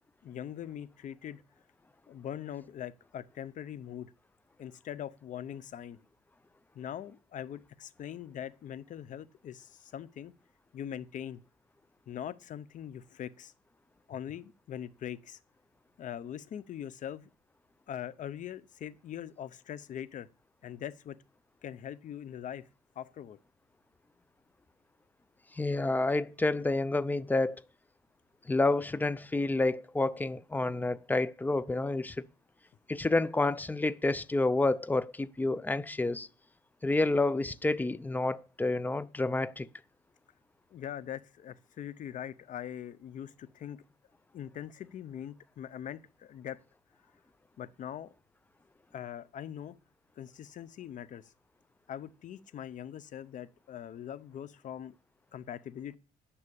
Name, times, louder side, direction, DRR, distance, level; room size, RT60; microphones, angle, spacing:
voice 1, 0.2-1.4 2.1-4.1 4.6-6.0 6.7-10.3 10.7-11.4 12.1-13.5 14.1-15.4 16.0-17.3 17.9-20.3 20.6-21.2 21.6-22.6 23.0-23.4 40.7-43.8 44.3-46.6 47.6-48.1 48.9-49.8 50.2-51.3 51.9-55.0 55.3-56.0, left 10 dB, 50° left, 0.7 m, -42 dB
voice 2, 25.5-27.6 28.5-32.2 32.9-36.3 36.8-39.7, left 2 dB, 10° left, 0.5 m, -29 dB
9.9 x 6.1 x 6.9 m
cardioid pair, 110°, 17 cm